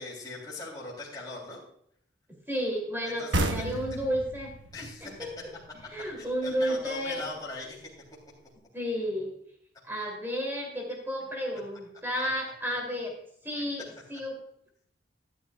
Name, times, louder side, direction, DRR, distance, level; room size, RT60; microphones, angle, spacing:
voice 1, 0.0-1.6 3.2-3.8 4.7-5.1 6.2-7.8 12.2-12.3, left 3 dB, 20° left, -6 dB, 3.5 m, -40 dB
voice 2, 2.5-5.3 5.9-7.3 8.7-9.3 9.8-13.2 13.4-14.4, equal, 10° right, 0 dB, 3.1 m, -32 dB
sound 1, 3.3-6.7, right 1 dB, 90° right, 1.1 m, -33 dB
12.5 x 12.0 x 2.4 m, 0.68 s
head